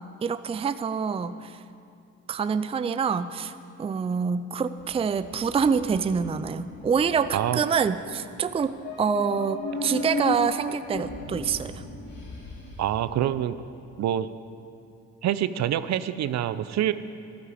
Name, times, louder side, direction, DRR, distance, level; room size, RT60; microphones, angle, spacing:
voice 1, 0.2-1.6 2.3-3.5 3.8-11.8, right 6 dB, 20° right, 12 dB, 0.4 m, -26 dB
sound 1, 4.8-13.0, left 3 dB, 55° left, 3.4 m, -36 dB
voice 2, 12.8-13.6 14.0-14.3 15.2-16.9, right 11 dB, 65° right, 14 dB, 0.6 m, -26 dB
14.5 x 13.0 x 4.9 m, 2.5 s
cardioid pair, 90°, 30 cm